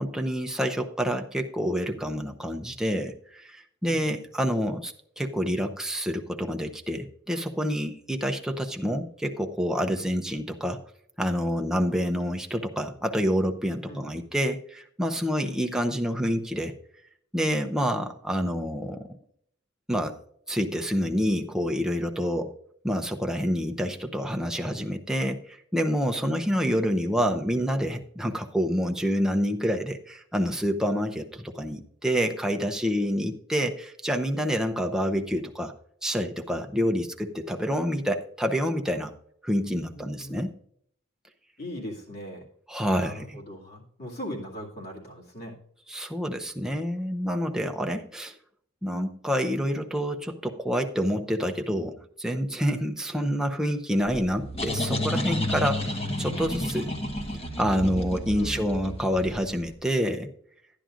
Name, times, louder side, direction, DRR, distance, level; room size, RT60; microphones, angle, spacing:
voice 1, 0.0-10.8 11.2-16.7 17.3-19.1 19.9-20.2 20.5-22.5 22.8-35.7 36.0-39.1 39.4-40.6 42.7-43.4 45.9-48.3 48.8-56.9 57.6-60.3, equal, 5° right, 3 dB, 0.6 m, -27 dB
voice 2, 3.9-4.2 13.9-14.2 15.4-15.7 26.2-26.6 39.6-40.4 41.6-42.4 43.0-45.6 58.4-58.7, equal, 50° left, -3 dB, 2.4 m, -40 dB
sound 1, 54.1-59.6, left 1 dB, 30° left, 1.2 m, -31 dB
12.5 x 10.0 x 2.5 m, 0.65 s
head